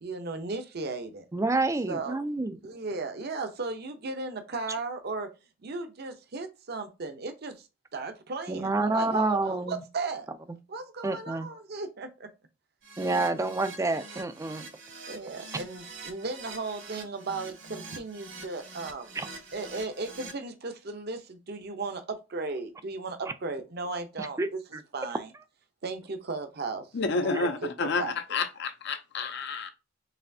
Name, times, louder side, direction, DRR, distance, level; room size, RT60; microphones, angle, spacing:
voice 1, 0.0-1.3 1.9-2.3 2.6-5.3 5.6-7.5 7.9-10.3 10.7-12.3 13.0-13.3 15.1-19.1 19.5-22.0 22.3-24.6 24.9-25.3 25.8-26.9 27.2-27.5 27.8-28.1, right 3 dB, 55° right, 0.7 m, -36 dB
voice 2, 1.3-2.6 8.5-9.8 10.5-10.6 11.0-11.5 13.0-14.7 19.2-19.3 24.2-24.5 24.7-24.8 27.3-27.4, right 2 dB, 15° right, 0.3 m, -28 dB
Keyboard (musical), 12.8-20.3, right 3 dB, 80° right, 2.0 m, -45 dB
voice 3, 26.9-29.7, left 4 dB, 60° left, 0.5 m, -30 dB
4.1 x 3.3 x 2.7 m
head